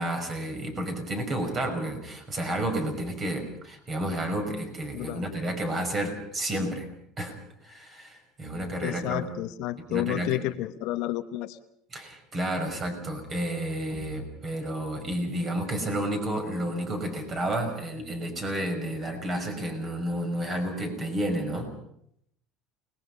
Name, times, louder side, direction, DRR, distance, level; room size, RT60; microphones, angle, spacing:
voice 1, 0.0-6.9 7.2-7.4 7.6-9.3 9.9-10.4 11.9-21.7, right 1 dB, 30° right, 5 dB, 5.8 m, -31 dB
voice 2, 8.8-11.6, left 16 dB, 60° left, 10 dB, 1.1 m, -31 dB
29.5 x 20.0 x 5.6 m, 0.71 s
cardioid pair, 140°, 0 cm